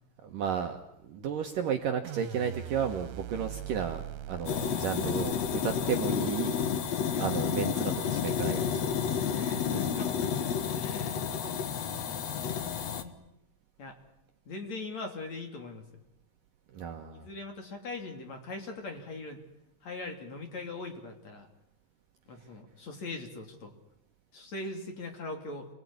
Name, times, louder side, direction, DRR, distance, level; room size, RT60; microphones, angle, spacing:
voice 1, 0.2-6.6 7.2-9.8 16.7-17.3, right 7 dB, 65° right, 5 dB, 2.5 m, -34 dB
sound 1, 2.0-7.1, right 10 dB, 80° right, 3.4 m, -42 dB
sound 2, 4.5-13.0, left 7 dB, 65° left, 1.7 m, -31 dB
voice 2, 7.1-7.5 9.7-13.1 13.8-14.0 14.5-16.0 17.1-19.4 19.8-21.5 22.3-23.7 24.3-25.7, left 3 dB, 40° left, 4 dB, 3.7 m, -41 dB
29.0 x 21.0 x 9.8 m, 0.80 s
omnidirectional pair, 5.2 m